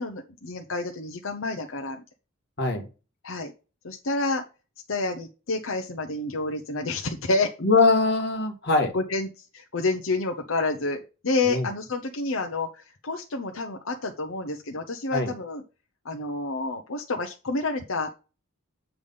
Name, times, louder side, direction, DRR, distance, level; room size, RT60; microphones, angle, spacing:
voice 1, 0.0-2.0 3.2-3.5 3.8-4.4 4.9-7.5 8.9-15.6 16.0-18.1, left 3 dB, 70° left, 3 dB, 0.9 m, -29 dB
voice 2, 7.6-8.9 11.4-11.7 15.1-15.3, left 3 dB, 55° left, 3 dB, 1.7 m, -22 dB
8.2 x 3.4 x 5.4 m, 0.32 s
head